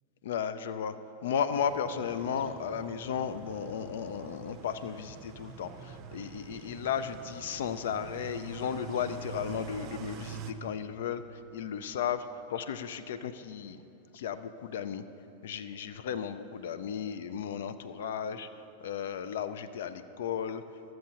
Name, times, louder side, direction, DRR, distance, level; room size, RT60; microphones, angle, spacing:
voice 1, 0.2-1.0 1.2-11.2 11.5-13.8 14.1-15.0 15.4-18.5 18.8-20.6, left 7 dB, 60° left, 12 dB, 0.4 m, -34 dB
sound 1, 1.5-10.5, right 7 dB, 40° right, 0.5 m, -46 dB
13.5 x 7.6 x 2.8 m, 3.0 s
figure-of-eight pair, 90°, 0 cm